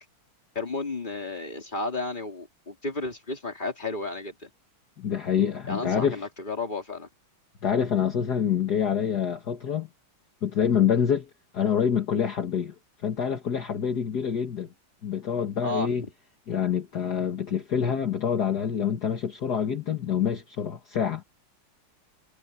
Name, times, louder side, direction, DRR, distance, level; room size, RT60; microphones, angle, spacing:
voice 1, 0.6-4.5 5.7-7.1 15.6-15.9, left 2 dB, 20° left, 3.7 m, -32 dB
voice 2, 5.0-6.3 7.6-9.9 10.4-11.3 11.5-12.7 13.0-14.7 15.0-16.0 16.5-21.2, left 8 dB, 50° left, 2.2 m, -26 dB
omnidirectional pair, 2.3 m